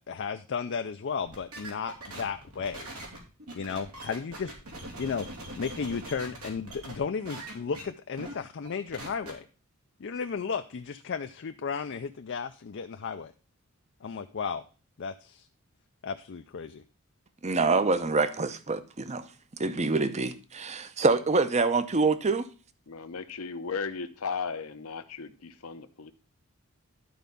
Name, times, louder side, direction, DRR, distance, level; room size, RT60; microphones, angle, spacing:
voice 1, 0.0-2.9 3.5-4.5 5.0-5.3 5.5-9.5 10.0-13.3 14.0-14.6 15.0-15.5 16.0-16.8, left 5 dB, 55° left, 0.5 m, -34 dB
sound 1, 1.3-7.0 7.2-7.8 8.2-8.3 8.6-9.3, right 1 dB, 90° right, 2.8 m, -42 dB
voice 2, 17.4-19.3 19.6-22.5, right 3 dB, 30° right, 0.7 m, -26 dB
voice 3, 22.9-26.1, left 5 dB, 75° left, 0.8 m, -36 dB
11.0 x 4.6 x 5.3 m
head